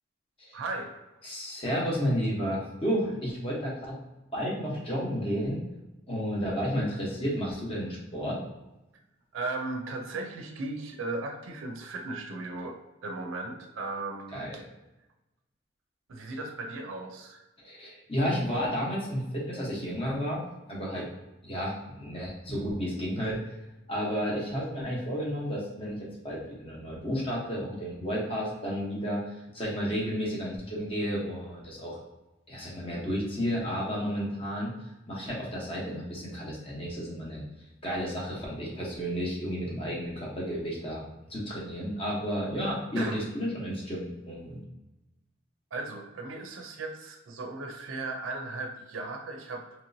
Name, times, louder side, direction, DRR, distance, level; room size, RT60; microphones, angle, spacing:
voice 1, 0.5-0.9 9.3-14.6 16.1-17.4 43.0-43.2 45.7-49.7, right 2 dB, 85° right, 3 dB, 0.5 m, -36 dB
voice 2, 1.2-4.0 4.3-5.6 6.1-8.4 14.3-14.6 17.6-20.4 20.7-21.1 21.4-23.4 23.9-32.0 32.5-34.7 35.1-37.4 37.8-41.0 41.3-44.6, equal, 30° left, -5 dB, 0.9 m, -32 dB
3.0 x 3.0 x 2.6 m, 1.0 s
head